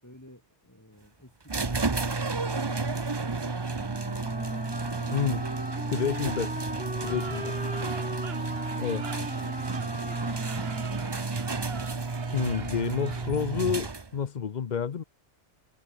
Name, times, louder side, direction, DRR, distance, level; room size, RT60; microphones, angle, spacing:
voice 1, 0.0-6.4, equal, 15° left, 6.0 m, -53 dB
sound 1, 1.5-14.3, right 3 dB, 25° right, 0.9 m, -32 dB
Wind instrument woodwind instrument, 3.7-12.0, right 1 dB, 5° right, 2.2 m, -38 dB
voice 2, 5.1-5.4 5.9-6.7 7.0-7.4 8.8-9.0 12.3-15.0, left 7 dB, 45° left, 0.8 m, -29 dB
sound 2, 7.0-13.3, right 7 dB, 60° right, 1.3 m, -44 dB
omnidirectional pair, 1.2 m